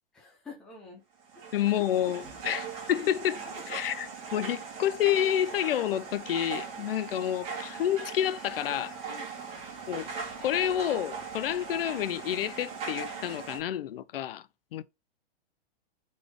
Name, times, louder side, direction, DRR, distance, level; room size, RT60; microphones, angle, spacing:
voice 1, 0.1-1.0 1.3-1.5 2.2-2.4 3.3-3.8 9.1-9.7, left 3 dB, ahead, 0.4 m, -48 dB
sound 1, 1.2-13.6, right 5 dB, 20° right, 1.5 m, -40 dB
voice 2, 1.5-3.4 3.7-9.0 9.9-10.1 10.4-14.4 14.7-14.8, left 11 dB, 70° left, 0.5 m, -29 dB
4.0 x 3.5 x 3.3 m
hypercardioid pair, 170°, 30 cm